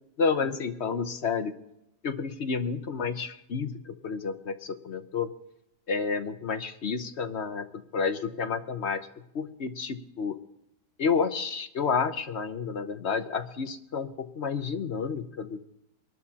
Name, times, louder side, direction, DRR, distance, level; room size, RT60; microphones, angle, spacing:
voice 1, 0.2-1.5 2.0-5.3 5.9-7.7 7.9-9.0 9.3-10.4 11.0-15.6, left 5 dB, 50° left, 8 dB, 1.0 m, -30 dB
24.5 x 12.0 x 2.8 m, 0.82 s
omnidirectional pair, 1.7 m